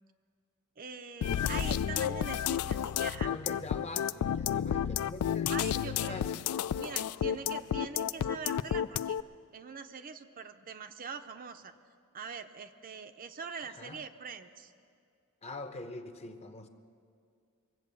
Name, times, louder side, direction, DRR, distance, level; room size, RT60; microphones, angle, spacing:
voice 1, 0.8-3.3 5.5-6.2 6.8-9.2 9.5-11.7 12.1-14.7, right 5 dB, 40° right, 8 dB, 0.6 m, -43 dB
sound 1, 1.2-9.2, left 9 dB, 70° left, 0.3 m, -31 dB
voice 2, 3.2-5.5 5.8-6.5 13.8-14.0 15.4-16.7, left 2 dB, 30° left, 7 dB, 0.8 m, -43 dB
23.0 x 8.3 x 6.8 m, 2.3 s
head